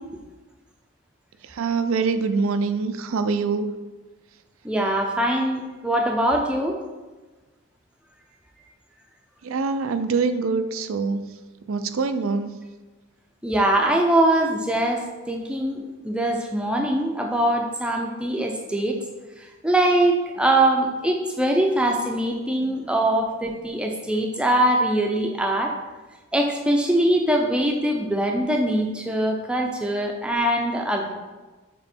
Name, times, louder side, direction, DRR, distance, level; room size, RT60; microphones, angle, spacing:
voice 1, 1.4-3.7 9.4-11.3 11.7-12.6 22.6-22.7, right 4 dB, 80° right, 10 dB, 0.4 m, -24 dB
voice 2, 4.6-6.8 13.4-19.0 19.6-25.7 26.3-31.1, right 1 dB, 5° right, 1 dB, 0.5 m, -22 dB
7.0 x 3.1 x 4.3 m, 1.2 s
head